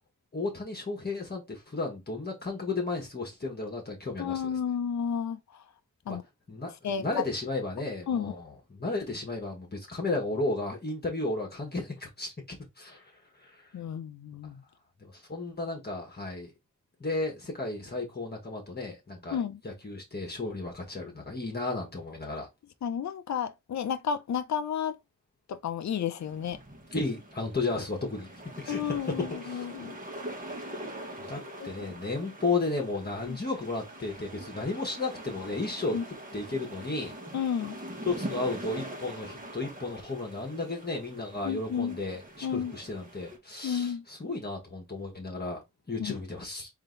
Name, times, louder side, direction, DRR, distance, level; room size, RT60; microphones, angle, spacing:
voice 1, 0.3-4.5 6.1-6.2 6.5-13.1 13.4-13.7 15.0-16.5 17.0-22.5 26.9-28.3 28.6-29.7 31.2-36.0 36.3-37.1 38.1-45.6 45.9-46.7, left 3 dB, 30° left, 1.4 m, -34 dB
voice 2, 4.2-5.4 6.1-6.2 6.8-7.3 8.1-8.4 13.7-14.6 19.3-19.6 22.8-25.0 25.5-26.6 28.7-30.0 31.6-31.7 33.3-33.4 35.9-36.0 37.3-37.8 41.4-42.0 42.4-42.7 43.6-44.0 46.0-46.1, left 7 dB, 60° left, 0.6 m, -32 dB
sound 1, 26.2-43.4, right 1 dB, 25° right, 1.4 m, -43 dB
3.8 x 2.8 x 3.9 m
wide cardioid pair, 100°, 32 cm